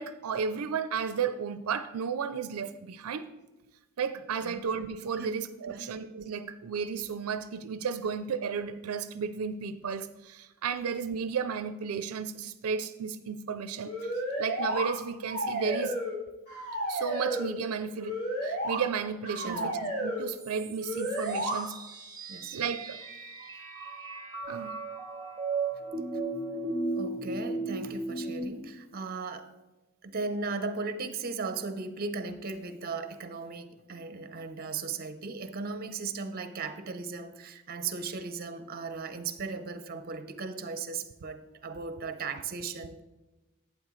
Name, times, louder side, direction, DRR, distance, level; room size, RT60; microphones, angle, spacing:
voice 1, 0.0-3.3 4.0-14.1 14.4-16.0 16.9-21.8 22.5-23.0 24.5-24.8, right 6 dB, 85° right, 11 dB, 0.4 m, -33 dB
voice 2, 5.7-6.0 19.4-19.8 22.3-22.6 27.0-29.5 30.0-43.0, right 4 dB, 45° right, 10 dB, 0.7 m, -37 dB
sound 1, 13.8-14.9 15.2-16.2 16.5-17.5 18.0-18.8 19.2-20.2 20.8-21.6, equal, 50° left, 3.4 m, -32 dB
sound 2, 20.3-28.4, right 3 dB, 20° right, 0.9 m, -36 dB
11.5 x 8.7 x 3.1 m, 1.1 s
head